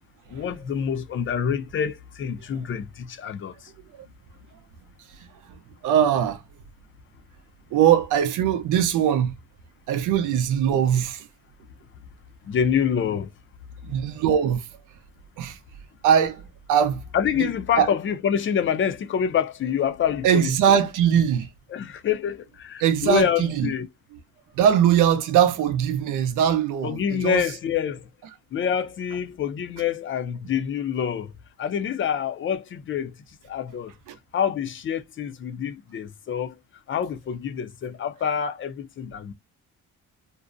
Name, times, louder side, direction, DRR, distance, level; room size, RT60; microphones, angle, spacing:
voice 1, 0.3-3.7 12.4-13.3 17.1-20.6 21.7-23.9 26.8-28.1 28.5-31.3 31.6-33.1 33.5-33.9 34.3-36.6 36.9-39.3, left 8 dB, 40° left, 0.4 m, -26 dB
voice 2, 5.8-6.4 7.7-9.3 9.9-11.3 13.8-14.7 15.4-15.6 16.0-16.4 16.7-17.0 17.4-17.5 17.8-17.9 20.2-21.5 22.8-23.7 24.6-27.4 34.1-34.2, right 9 dB, 90° right, 0.6 m, -21 dB
2.6 x 2.1 x 2.4 m
cardioid pair, 90°, 30 cm